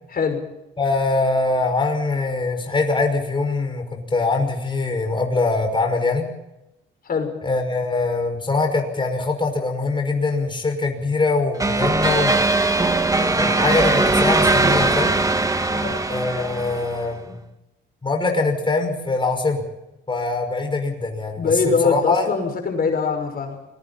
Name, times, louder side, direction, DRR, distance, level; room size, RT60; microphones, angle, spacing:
voice 1, 0.1-0.4 7.0-7.3 15.7-16.0 21.4-23.6, left 5 dB, 50° left, 4 dB, 5.8 m, -22 dB
voice 2, 0.8-6.3 7.4-12.4 13.2-15.2 16.1-17.4 18.0-19.6 20.1-21.5 21.8-22.2, left 3 dB, 25° left, 3 dB, 5.7 m, -23 dB
sound 1, 11.6-17.1, right 2 dB, 15° right, 1.9 m, -20 dB
29.0 x 22.0 x 4.3 m, 0.92 s
cardioid pair, 90°, 20 cm